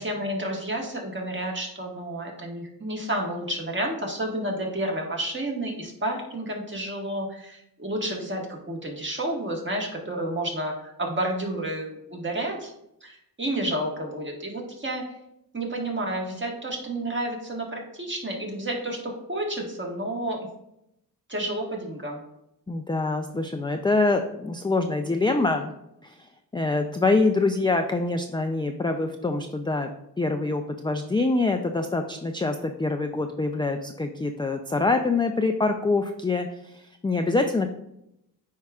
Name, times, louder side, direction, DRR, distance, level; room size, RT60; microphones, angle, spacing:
voice 1, 0.0-12.7 13.0-15.1 15.5-20.5 21.3-22.2, right 1 dB, 30° right, 0 dB, 1.6 m, -30 dB
voice 2, 22.7-25.7 26.0-29.9 30.2-37.7, left 3 dB, 15° left, 5 dB, 0.4 m, -25 dB
8.9 x 4.8 x 2.4 m, 0.81 s
cardioid pair, 70°, 39 cm